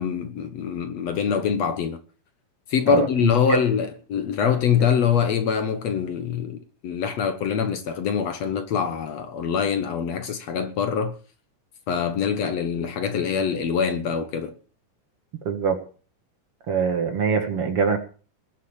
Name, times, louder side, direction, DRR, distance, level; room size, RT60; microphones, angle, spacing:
voice 1, 0.0-2.0 2.7-11.2 11.9-14.5, left 7 dB, 60° left, 2.2 m, -24 dB
voice 2, 2.9-3.6 15.5-15.8 16.7-18.0, right 6 dB, 50° right, 2.6 m, -24 dB
20.5 x 7.5 x 7.4 m
omnidirectional pair, 3.6 m